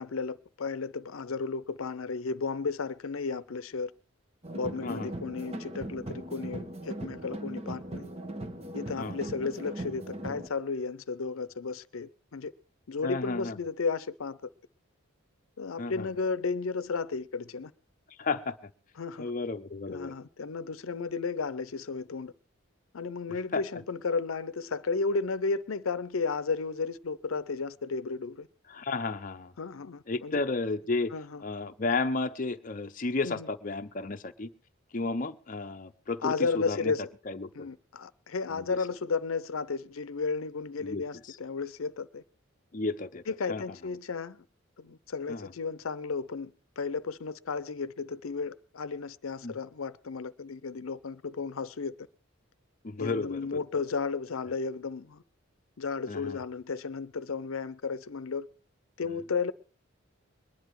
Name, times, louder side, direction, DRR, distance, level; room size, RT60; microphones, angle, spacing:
voice 1, 0.0-3.9 4.5-8.1 8.7-12.5 12.9-14.4 15.6-17.7 19.0-19.3 19.9-22.3 22.9-28.5 29.6-30.4 31.1-31.4 33.2-33.5 36.2-37.1 37.6-42.2 43.3-44.4 44.8-52.1 53.0-55.2 55.8-58.5 59.0-59.5, left 4 dB, 90° left, 0.6 m, -33 dB
sound 1, 4.4-10.5, right 1 dB, 30° right, 1.2 m, -39 dB
voice 2, 9.0-9.3 13.0-13.6 15.8-16.1 18.2-18.7 19.2-20.1 23.3-23.6 28.7-29.5 30.1-31.1 31.4-34.5 34.9-36.9 37.3-37.7 38.5-38.8 40.8-41.4 42.7-43.6 45.3-45.5 49.4-49.5 52.8-53.6 56.1-56.4 59.1-59.2, left 3 dB, 40° left, 0.6 m, -33 dB
21.5 x 10.5 x 4.6 m
head